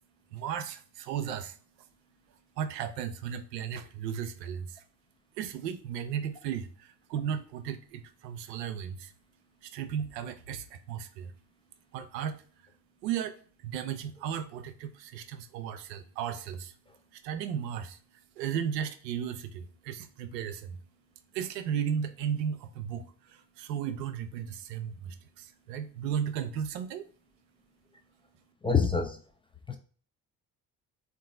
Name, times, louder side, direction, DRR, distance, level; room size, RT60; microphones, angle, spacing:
voice 1, 0.0-4.8 5.4-27.1 27.4-28.5, right 8 dB, 80° right, 0.5 m, -36 dB
voice 2, 28.6-29.2 29.7-29.8, left 5 dB, 10° left, 0.4 m, -25 dB
3.7 x 2.5 x 3.7 m
figure-of-eight pair, 45°, 49 cm